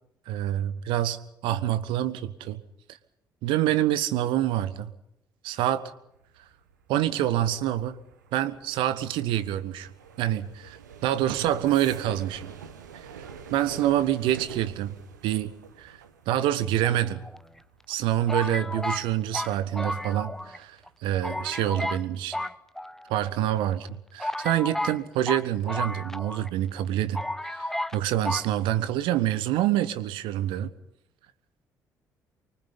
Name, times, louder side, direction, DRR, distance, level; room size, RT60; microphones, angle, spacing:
voice 1, 0.3-2.6 3.4-4.9 5.4-5.9 6.9-8.0 8.3-9.9 10.2-10.8 11.0-12.5 13.5-14.9 15.2-16.0 16.3-17.2 17.9-22.4 23.1-30.7, right 12 dB, 60° right, 1.2 m, -26 dB
sound 1, 6.1-20.8 21.1-21.5 21.8-22.2, right 7 dB, 75° right, 1.4 m, -46 dB
sound 2, 16.8-17.6 18.3-20.6 20.9-21.0 21.2-22.0 22.3-23.3 23.8-23.9 24.2-26.5 26.8-26.9 27.1-28.0 28.2-28.5, left 1 dB, 5° left, 0.8 m, -32 dB
25.0 x 23.5 x 5.5 m
figure-of-eight pair, 45°, 10 cm